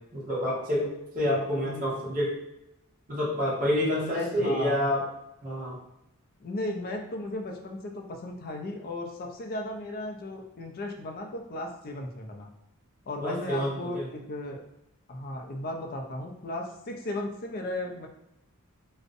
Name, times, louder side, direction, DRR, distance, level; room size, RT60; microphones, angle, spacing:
voice 1, 0.1-2.4 3.1-5.0 5.4-5.8 13.2-14.0, left 1 dB, 40° right, -5 dB, 0.8 m, -28 dB
voice 2, 1.3-1.9 4.0-4.8 6.4-12.5 13.1-14.6 15.1-18.1, left 1 dB, 40° left, 2 dB, 0.3 m, -35 dB
2.5 x 2.0 x 2.5 m, 0.86 s
head